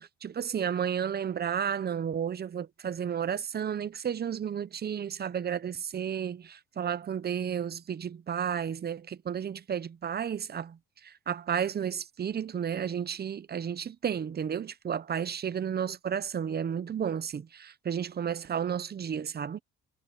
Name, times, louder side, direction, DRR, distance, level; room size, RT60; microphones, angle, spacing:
voice 1, 0.0-10.8 11.0-19.6, right 8 dB, 30° right, 0.8 m, -32 dB
cardioid pair, 115°, 30 cm